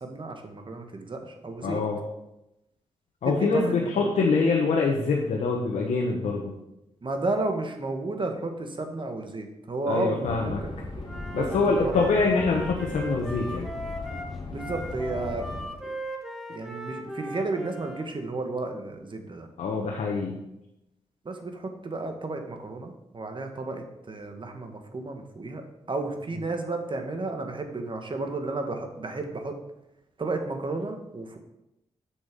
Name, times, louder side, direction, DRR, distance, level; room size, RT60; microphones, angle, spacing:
voice 1, 0.0-1.8 3.2-4.2 7.0-10.8 11.4-12.1 14.5-15.7 16.5-19.5 21.2-25.6 25.9-29.6 30.2-31.4, right 2 dB, 45° right, 5 dB, 1.6 m, -32 dB
voice 2, 1.6-2.0 3.2-6.5 9.9-10.6 11.3-13.7 19.6-20.4, left 4 dB, 85° left, -1 dB, 1.1 m, -25 dB
sound 1, 10.2-15.6, left 3 dB, 40° left, 2.1 m, -38 dB
Wind instrument woodwind instrument, 11.0-18.1, right 1 dB, ahead, 1.8 m, -38 dB
8.0 x 6.5 x 5.3 m, 0.89 s
cardioid pair, 55°, 12 cm